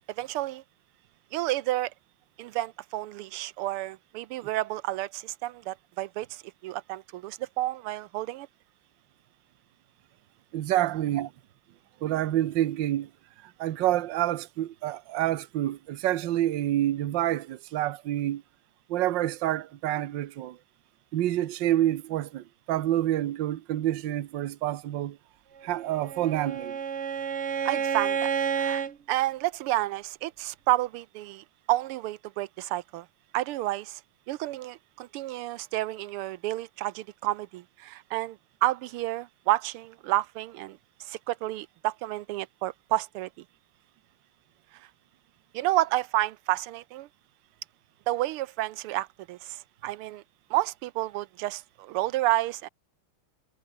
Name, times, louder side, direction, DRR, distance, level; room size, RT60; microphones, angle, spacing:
voice 1, 0.2-0.6 1.3-1.9 2.4-8.5 27.6-28.3 28.6-33.1 33.3-34.0 34.3-43.3 45.5-47.1 48.1-50.2 50.5-52.7, right 16 dB, 90° right, 1.6 m, -30 dB
voice 2, 10.5-11.3 12.0-13.1 13.4-18.4 18.9-20.6 21.1-25.2 25.6-26.8, right 13 dB, 65° right, 1.5 m, -28 dB
Bowed string instrument, 25.7-28.9, right 7 dB, 45° right, 1.0 m, -30 dB
omnidirectional pair, 2.4 m